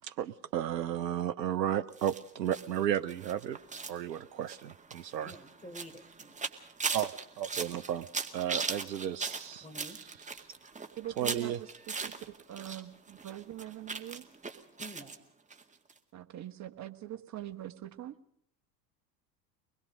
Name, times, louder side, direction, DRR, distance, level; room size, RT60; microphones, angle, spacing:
voice 1, 0.0-3.6 3.9-5.3 6.9-8.1 8.3-9.7 11.2-11.6, right 10 dB, 80° right, 10 dB, 0.8 m, -33 dB
sound 1, 2.0-12.8 13.1-15.2 15.5-15.6 15.9-16.0, right 4 dB, 15° right, 2.0 m, -39 dB
voice 2, 5.2-6.4 9.6-10.0 14.8-15.2, equal, 15° left, 6 dB, 4.1 m, -48 dB
voice 3, 11.0-14.3 16.1-18.1, right 12 dB, 35° right, 8 dB, 1.5 m, -43 dB
24.0 x 20.5 x 5.2 m, 0.69 s
figure-of-eight pair, 75°, 50 cm